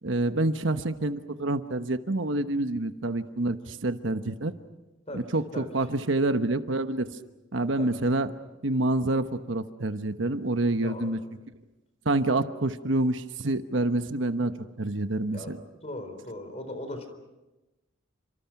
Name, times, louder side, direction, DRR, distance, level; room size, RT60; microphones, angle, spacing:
voice 1, 0.0-4.5 5.1-7.1 7.5-8.3 8.6-11.2 12.0-15.6, right 2 dB, 65° right, 9 dB, 1.1 m, -27 dB
voice 2, 10.8-11.2 15.3-15.5 15.8-17.1, left 1 dB, 30° left, 8 dB, 4.1 m, -38 dB
29.5 x 26.5 x 6.0 m, 1.1 s
head